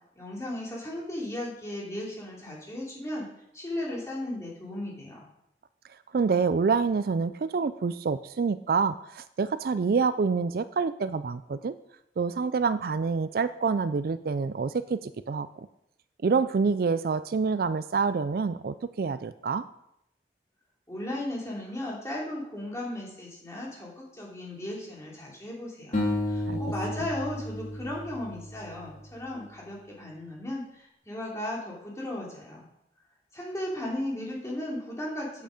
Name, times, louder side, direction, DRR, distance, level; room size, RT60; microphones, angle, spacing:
voice 1, 0.2-3.3 3.5-5.2 20.9-26.0 26.3-32.6 33.3-35.4, left 1 dB, 15° left, -4 dB, 2.8 m, -36 dB
voice 2, 6.1-11.7 12.2-15.7 16.2-19.6 26.5-26.6, right 5 dB, 55° right, 13 dB, 0.4 m, -27 dB
sound 1, 25.9-29.2, left 1 dB, 45° left, 3.0 m, -32 dB
8.9 x 8.1 x 5.0 m, 0.79 s
head